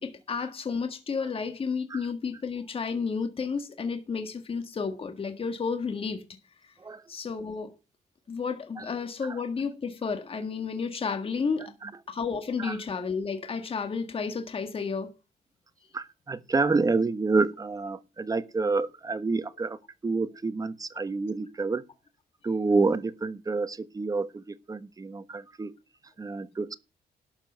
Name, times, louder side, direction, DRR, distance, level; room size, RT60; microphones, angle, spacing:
voice 1, 0.0-6.2 6.6-6.7 7.1-7.7 8.3-11.7 12.1-15.1 21.0-21.1, left 5 dB, 35° left, 1.7 m, -32 dB
voice 2, 15.9-19.8 20.0-21.8 22.4-25.7 26.2-26.7, right 3 dB, 20° right, 1.2 m, -28 dB
12.0 x 7.0 x 6.8 m
cardioid pair, 115°, 16 cm